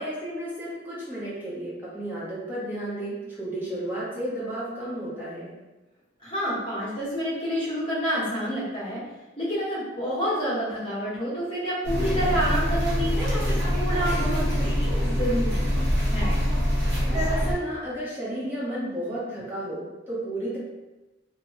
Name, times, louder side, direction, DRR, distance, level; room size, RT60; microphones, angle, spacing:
voice 1, 0.0-5.5 17.0-20.6, right 1 dB, 10° right, -9 dB, 0.8 m, -32 dB
voice 2, 6.2-9.0 9.4-15.6 16.1-16.3, equal, 30° left, -9 dB, 1.2 m, -28 dB
sound 1, 11.8-17.5, equal, 60° right, 0.8 m, -24 dB
3.0 x 2.1 x 2.8 m, 1.1 s
head